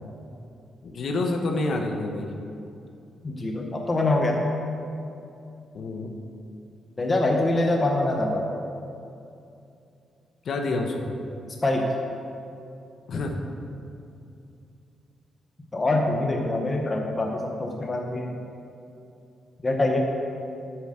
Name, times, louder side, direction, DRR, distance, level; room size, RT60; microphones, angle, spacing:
voice 1, 0.8-2.3 5.7-6.2 10.4-11.1 13.1-13.4, left 2 dB, 50° left, 2 dB, 1.0 m, -28 dB
voice 2, 3.2-4.5 7.0-8.4 11.6-11.9 15.7-18.4 19.6-20.0, left 2 dB, 20° left, 0 dB, 0.8 m, -24 dB
7.6 x 7.2 x 6.5 m, 2.6 s
wide cardioid pair, 175°, 0 cm